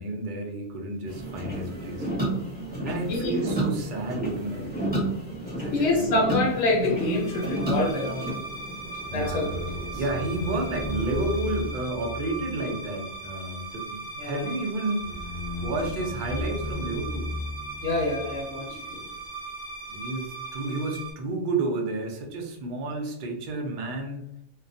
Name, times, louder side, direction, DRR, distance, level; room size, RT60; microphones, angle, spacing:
voice 1, 0.0-2.1 2.8-5.2 5.6-6.2 9.1-9.7 10.0-15.1 15.6-17.3 19.9-24.3, right 2 dB, 70° right, 2 dB, 0.4 m, -31 dB
sound 1, 1.1-11.7, right 1 dB, 10° right, 0.7 m, -32 dB
voice 2, 2.7-3.4 4.8-4.9 5.7-8.2 9.1-9.5 9.9-10.0 14.2-14.5 17.8-19.1, left 2 dB, 65° left, -2 dB, 0.9 m, -26 dB
sound 2, 7.0-21.1, right 1 dB, 25° left, 0.5 m, -36 dB
2.2 x 2.1 x 2.5 m, 0.80 s
omnidirectional pair, 1.4 m